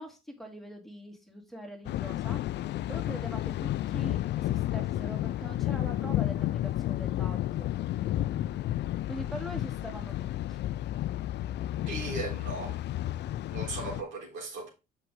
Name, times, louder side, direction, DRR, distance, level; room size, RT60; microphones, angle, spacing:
voice 1, 0.0-2.4 2.9-7.7 9.1-10.6, equal, ahead, 2.3 m, -43 dB
Thunder, 1.8-14.0, left 14 dB, 60° left, 0.4 m, -31 dB
voice 2, 11.9-12.8 13.5-14.7, right 3 dB, 75° right, 3.6 m, -37 dB
6.5 x 5.5 x 3.8 m
supercardioid pair, 65°, 20 cm